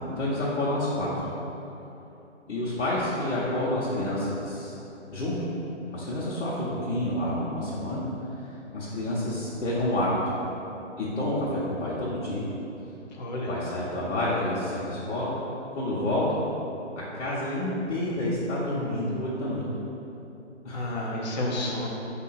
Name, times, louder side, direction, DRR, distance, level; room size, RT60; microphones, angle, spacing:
voice 1, 0.1-1.1 2.5-4.7 5.1-5.4 5.9-8.0 8.5-10.3 11.0-12.5 13.5-15.3 15.7-16.4 17.1-19.6 20.6-20.9, left 1 dB, 70° left, -9 dB, 1.1 m, -29 dB
voice 2, 13.2-13.5 20.7-21.9, left 1 dB, 35° left, -4 dB, 0.6 m, -30 dB
4.6 x 2.7 x 4.2 m, 2.9 s
hypercardioid pair, 155°, 37 cm